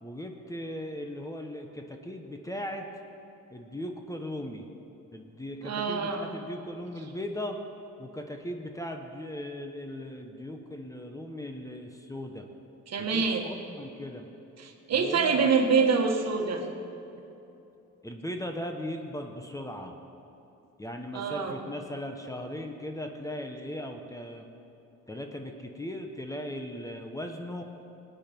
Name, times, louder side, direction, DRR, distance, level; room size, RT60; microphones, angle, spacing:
voice 1, 0.0-2.9 3.5-4.7 5.1-7.6 8.0-12.5 13.0-14.2 14.9-15.7 18.0-19.9 20.8-24.4 25.1-27.6, left 1 dB, 10° left, 4 dB, 1.1 m, -38 dB
voice 2, 5.6-6.3 12.9-13.5 14.6-16.6 21.1-21.6, right 5 dB, 60° right, 3 dB, 1.6 m, -26 dB
19.5 x 9.1 x 4.6 m, 2.9 s
cardioid pair, 90°, 30 cm